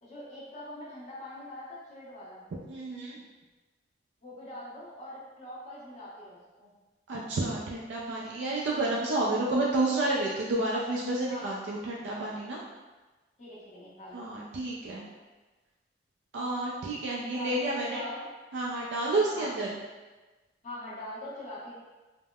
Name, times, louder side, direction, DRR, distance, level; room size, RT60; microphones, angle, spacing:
voice 1, 0.0-2.4 4.2-6.7 11.3-11.6 13.4-14.2 17.2-18.2 19.3-19.5 20.6-21.7, left 1 dB, 40° left, -9 dB, 1.0 m, -43 dB
voice 2, 2.7-3.2 7.1-12.6 14.1-15.0 16.3-18.0 18.5-19.7, right 2 dB, 80° right, -4 dB, 0.4 m, -30 dB
3.4 x 2.0 x 2.2 m, 1.2 s
head